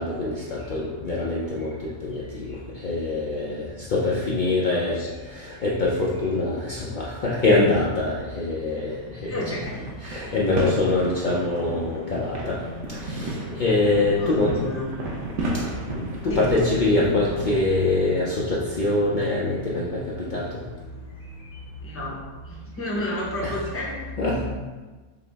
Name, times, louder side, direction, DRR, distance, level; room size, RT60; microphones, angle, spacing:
voice 1, 0.0-2.6 2.8-5.0 5.3-8.9 9.2-9.3 10.0-12.6 13.0-14.5 15.9-20.0 20.3-20.4 24.2-24.4, left 2 dB, 75° left, -6 dB, 0.4 m, -24 dB
voice 2, 4.2-5.1 9.2-9.8 14.1-14.9 16.2-16.5 21.8-24.0, left 1 dB, 15° left, -4 dB, 0.4 m, -32 dB
sound 1, 9.6-17.5, right 1 dB, 65° right, 0.9 m, -33 dB
5.7 x 2.0 x 3.3 m, 1.3 s
omnidirectional pair, 1.5 m